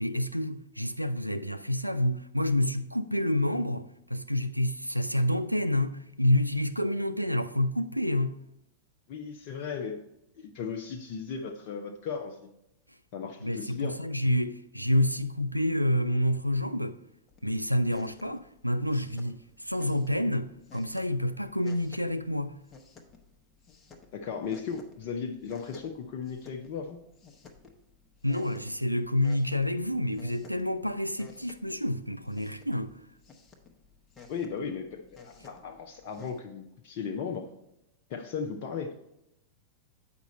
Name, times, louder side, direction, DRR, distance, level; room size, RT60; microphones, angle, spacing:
voice 1, 0.0-8.3 13.4-17.0 17.4-22.5 28.2-33.0, left 1 dB, 90° right, 0.3 m, -28 dB
voice 2, 9.1-10.0 10.4-12.5 13.1-14.0 24.1-27.0 34.3-37.5 38.1-38.9, left 6 dB, 45° left, 0.6 m, -36 dB
sound 1, 17.3-36.4, left 4 dB, 20° left, 1.0 m, -55 dB
8.2 x 5.2 x 4.2 m
figure-of-eight pair, 90°, 0 cm